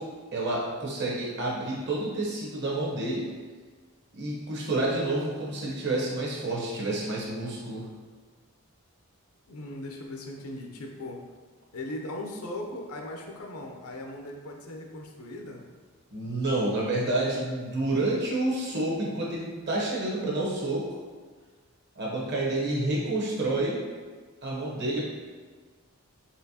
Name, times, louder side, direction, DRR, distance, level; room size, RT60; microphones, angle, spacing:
voice 1, 0.0-3.3 4.1-7.9 16.1-20.9 22.0-23.8 24.4-25.1, right 2 dB, 50° right, -4 dB, 0.9 m, -29 dB
voice 2, 9.5-11.2 11.7-15.6, left 1 dB, 75° left, 1 dB, 0.6 m, -38 dB
4.3 x 3.0 x 2.8 m, 1.5 s
head